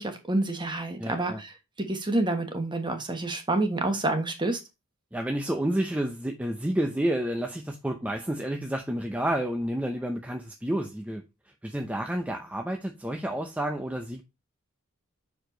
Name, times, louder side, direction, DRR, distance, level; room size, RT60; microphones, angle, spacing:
voice 1, 0.0-1.5 1.8-4.6, right 2 dB, 20° right, 1.3 m, -28 dB
voice 2, 1.0-1.4 5.1-11.2 11.6-14.2, right 1 dB, 5° right, 0.7 m, -30 dB
6.6 x 4.9 x 3.9 m
head